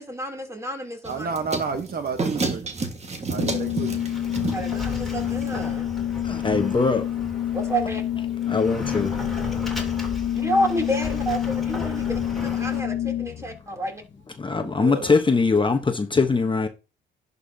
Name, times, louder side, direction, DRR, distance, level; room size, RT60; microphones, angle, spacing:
voice 1, 0.0-1.3 3.3-3.6 4.5-5.9 7.5-8.0 10.3-12.1 12.4-14.0, right 1 dB, 15° right, 3.0 m, -29 dB
sound 1, 1.1-5.8, right 3 dB, 35° right, 1.6 m, -31 dB
voice 2, 1.1-2.6 3.3-4.0 14.6-15.1, right 5 dB, 50° right, 1.1 m, -30 dB
Organ, 3.3-13.6, left 12 dB, 70° left, 0.7 m, -28 dB
Sliding door, 3.4-12.8, left 2 dB, ahead, 3.1 m, -36 dB
voice 3, 6.2-7.1 8.5-9.2 14.4-16.7, left 4 dB, 25° left, 1.0 m, -22 dB
11.0 x 5.5 x 2.8 m
cardioid pair, 90°, 20 cm